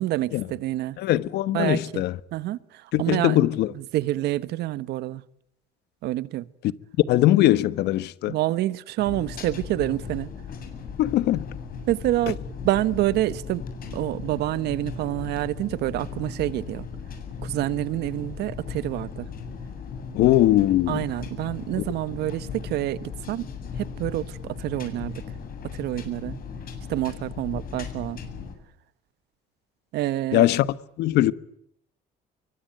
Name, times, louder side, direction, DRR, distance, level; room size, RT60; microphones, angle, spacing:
voice 1, 0.0-1.0 1.5-2.0 2.3-2.6 3.0-3.5 3.7-5.2 6.0-6.4 8.3-10.3 11.9-13.6 13.9-16.9 17.4-19.3 20.9-23.5 23.8-25.2 25.7-26.4 26.9-28.2 29.9-30.5, right 15 dB, 80° right, 1.2 m, -27 dB
voice 2, 1.0-2.2 2.9-3.7 7.1-8.4 11.0-11.5 20.1-21.1 30.3-30.7 31.0-31.3, left 14 dB, 80° left, 1.2 m, -21 dB
sound 1, 9.0-28.5, left 6 dB, 60° left, 7.7 m, -37 dB
25.5 x 24.0 x 9.2 m
cardioid pair, 110°, 17 cm